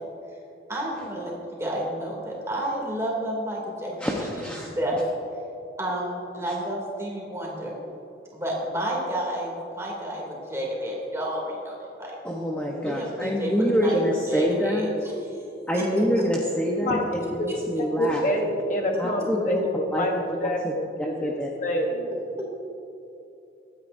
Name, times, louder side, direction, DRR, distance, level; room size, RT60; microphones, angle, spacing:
voice 1, 0.7-1.3 1.6-4.3 4.6-5.0 5.8-7.8 8.3-12.1 12.8-14.0 14.3-15.1 15.7-15.8, right 1 dB, 15° right, -3 dB, 2.7 m, -30 dB
voice 2, 4.0-4.7 12.2-14.9 15.7-18.2 19.0-19.6 19.9-20.7 21.0-21.5, equal, 10° left, -2 dB, 0.9 m, -26 dB
voice 3, 18.0-20.1 20.4-21.3 21.6-22.1, equal, 40° left, 1 dB, 1.1 m, -27 dB
24.0 x 9.6 x 2.7 m, 2.8 s
head